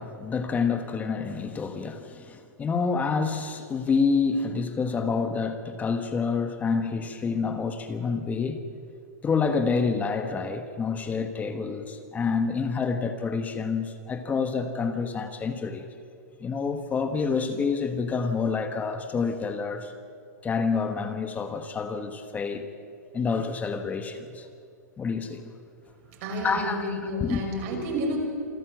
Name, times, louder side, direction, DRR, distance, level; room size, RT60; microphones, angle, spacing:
voice 1, 0.0-8.6 9.2-15.9 16.4-19.9 20.4-22.7 23.1-24.5 25.0-25.4 26.4-27.4, left 5 dB, 15° left, 8 dB, 1.3 m, -28 dB
voice 2, 26.2-28.2, equal, 50° right, 1 dB, 5.7 m, -30 dB
27.0 x 12.5 x 7.8 m, 2.4 s
hypercardioid pair, 140°, 10 cm